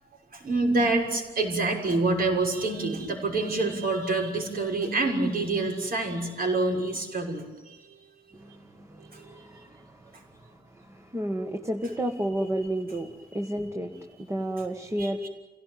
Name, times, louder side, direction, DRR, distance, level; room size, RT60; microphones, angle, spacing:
voice 1, 0.3-8.0 9.1-9.4 13.3-13.5 14.1-14.2 15.0-15.3, right 2 dB, 60° right, 2 dB, 6.3 m, -27 dB
voice 2, 8.3-10.1 10.7-13.1 13.3-13.9 14.3-15.3, right 1 dB, 15° right, 5 dB, 1.7 m, -31 dB
29.5 x 17.5 x 9.4 m, 1.2 s
wide cardioid pair, 145°, 17 cm